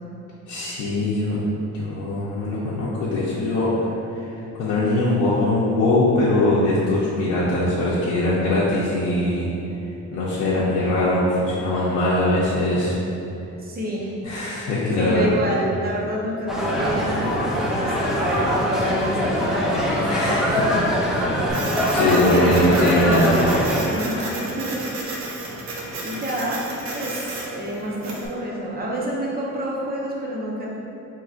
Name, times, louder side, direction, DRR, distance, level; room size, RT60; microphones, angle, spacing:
voice 1, 0.5-1.4 1.7-3.7 4.1-9.5 10.1-13.0 14.2-15.3 20.0-20.7 21.5-23.3 24.2-24.3, left 1 dB, 90° left, -8 dB, 0.6 m, -21 dB
voice 2, 13.6-14.2 15.0-20.8 21.9-24.8 26.0-26.6 26.9-30.8, equal, 30° right, -4 dB, 0.8 m, -28 dB
sound 1, 16.5-23.8, equal, ahead, 0.6 m, -23 dB
Printer, 21.5-28.3, right 2 dB, 65° right, 0.8 m, -32 dB
4.7 x 3.0 x 2.4 m, 2.8 s
cardioid pair, 90°, 30 cm